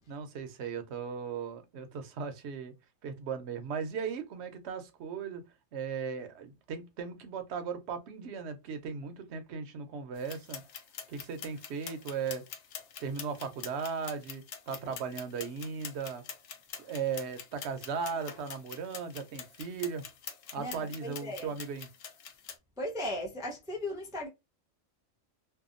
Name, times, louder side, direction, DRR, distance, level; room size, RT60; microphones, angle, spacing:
voice 1, 0.1-2.7 3.0-5.4 5.7-10.6 11.1-12.4 13.0-16.2 16.8-20.0 20.5-21.9, right 6 dB, 65° right, 0.9 m, -37 dB
Toaster oven ticking timer and bell, 10.1-22.6, left 7 dB, 70° left, 0.9 m, -46 dB
voice 2, 20.6-21.5 22.8-24.3, left 1 dB, 5° right, 0.4 m, -37 dB
2.7 x 2.2 x 2.4 m
omnidirectional pair, 1.3 m